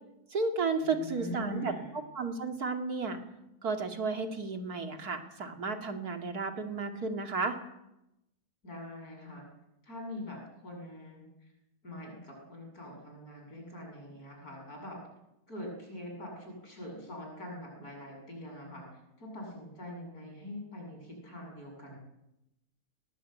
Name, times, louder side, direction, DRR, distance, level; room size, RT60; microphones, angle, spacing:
voice 1, 0.3-3.2 3.6-7.6, right 4 dB, 85° right, 5 dB, 3.0 m, -33 dB
voice 2, 0.8-2.0 8.6-9.5 9.8-11.3 11.8-15.0 15.5-18.9 19.2-22.0, left 1 dB, 75° left, 1 dB, 8.2 m, -43 dB
21.0 x 20.0 x 9.0 m, 0.89 s
omnidirectional pair, 1.6 m